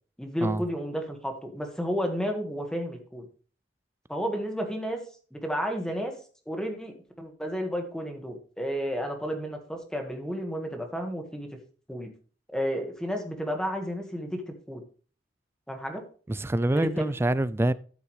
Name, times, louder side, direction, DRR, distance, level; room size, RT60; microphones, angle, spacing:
voice 1, 0.2-3.3 4.1-5.0 5.3-6.1 6.5-11.5 11.9-12.1 12.5-14.8 15.7-16.0 16.7-17.0, equal, 5° left, 1.7 m, -32 dB
voice 2, 16.3-17.7, right 1 dB, 15° right, 0.3 m, -25 dB
13.0 x 7.1 x 3.3 m
head